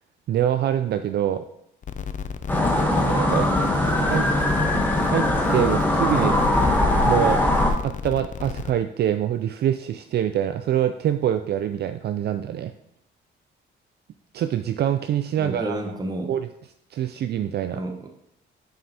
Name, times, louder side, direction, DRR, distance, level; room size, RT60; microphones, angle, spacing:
voice 1, 0.3-1.4 3.0-3.5 3.7-4.3 5.0-6.4 7.1-7.4 7.8-12.7 14.3-15.8 16.3-16.5 16.9-17.8, right 10 dB, 55° right, 9 dB, 0.4 m, -25 dB
sound 1, 1.8-8.7, left 7 dB, 40° left, 0.4 m, -33 dB
sound 2, 2.5-7.7, left 1 dB, 10° left, 1.2 m, -21 dB
voice 2, 15.4-16.3 17.7-18.1, right 1 dB, 20° right, 4 dB, 1.1 m, -31 dB
7.5 x 5.4 x 2.9 m, 0.76 s
cardioid pair, 90°, 20 cm